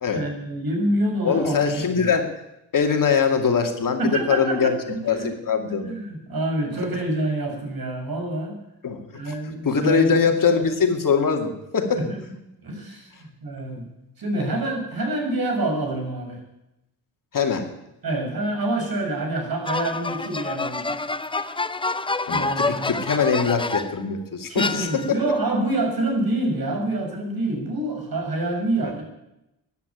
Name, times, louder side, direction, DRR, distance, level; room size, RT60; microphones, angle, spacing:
voice 1, 0.1-2.1 4.0-5.3 5.6-8.6 9.1-10.1 11.9-12.2 12.6-13.8 14.2-16.4 18.0-21.2 22.3-22.9 24.5-29.0, right 1 dB, 50° right, 3 dB, 6.0 m, -27 dB
voice 2, 1.2-2.3 2.7-4.7 5.0-5.9 8.8-9.3 9.6-12.0 13.6-13.8 17.3-17.7 22.3-25.2 28.8-28.9, left 6 dB, 45° left, 4 dB, 2.5 m, -22 dB
sound 1, 19.7-24.1 24.6-25.3, left 3 dB, 10° left, 0.6 m, -27 dB
14.5 x 10.5 x 9.3 m, 0.88 s
cardioid pair, 90°, 44 cm